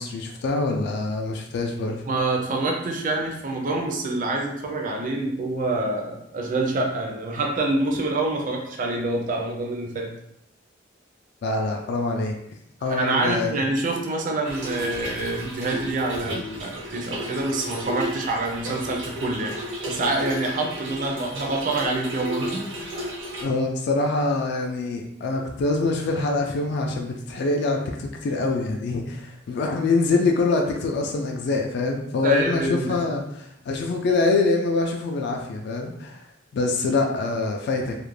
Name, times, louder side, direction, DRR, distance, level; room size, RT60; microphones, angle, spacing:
voice 1, 0.0-2.0 11.4-12.4 12.8-13.6 23.4-36.2 36.5-38.1, left 3 dB, 60° left, 2 dB, 0.3 m, -25 dB
voice 2, 2.1-10.1 12.8-19.5 19.9-23.1 32.2-33.0, right 2 dB, 45° right, 1 dB, 0.4 m, -26 dB
Trickle dribble / Fill (with liquid), 14.4-23.4, right 1 dB, 85° right, 0.7 m, -33 dB
2.4 x 2.0 x 3.1 m, 0.77 s
head